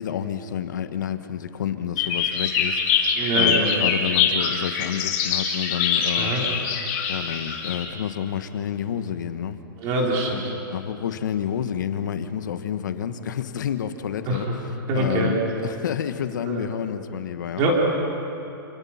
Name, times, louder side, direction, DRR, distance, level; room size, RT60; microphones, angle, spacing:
voice 1, 0.0-6.3 7.1-9.6 10.7-17.7, left 9 dB, 55° left, 9 dB, 1.4 m, -29 dB
sound 1, 2.0-7.8, left 7 dB, 25° left, 2.6 m, -24 dB
voice 2, 3.2-3.7 6.2-6.4 9.8-10.5 14.3-14.5 14.9-15.7 16.5-16.6 17.6-17.8, right 2 dB, 25° right, -1 dB, 3.7 m, -24 dB
28.0 x 26.0 x 5.8 m, 2.9 s
hypercardioid pair, 175°, 12 cm